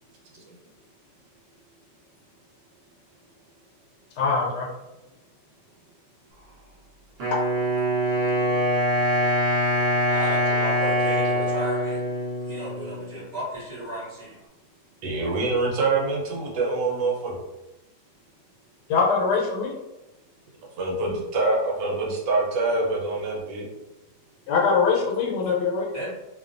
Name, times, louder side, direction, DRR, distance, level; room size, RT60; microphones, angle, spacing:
voice 1, 4.2-4.7 18.9-19.7 24.5-25.9, left 5 dB, 75° left, -2 dB, 1.2 m, -22 dB
Wind instrument woodwind instrument, 7.2-13.2, equal, 55° right, 0.9 m, -24 dB
voice 2, 10.1-12.0 12.5-14.4 25.9-26.1, right 1 dB, 30° right, -9 dB, 1.0 m, -34 dB
voice 3, 15.0-17.4 20.8-23.7, right 3 dB, 80° right, -2 dB, 1.3 m, -25 dB
2.9 x 2.3 x 2.4 m, 0.98 s
omnidirectional pair, 1.9 m